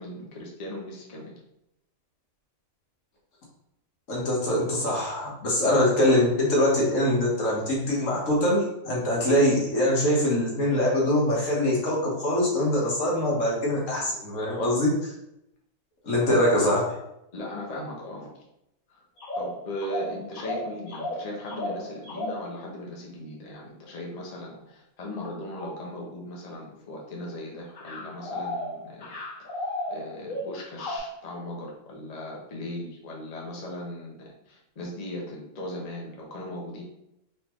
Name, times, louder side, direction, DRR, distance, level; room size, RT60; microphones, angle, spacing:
voice 1, 0.0-1.3 16.3-16.5 17.3-18.3 18.9-19.0 19.4-29.1 29.9-36.8, left 1 dB, 35° left, -2 dB, 0.8 m, -38 dB
voice 2, 4.1-15.1 16.0-16.8, left 1 dB, 65° left, -4 dB, 1.6 m, -23 dB
sound 1, 19.2-22.6 24.4-24.6 25.1-25.9 27.0-27.4 27.7-31.0, left 1 dB, 85° left, 1.7 m, -34 dB
4.3 x 3.6 x 3.0 m, 0.83 s
omnidirectional pair, 1.4 m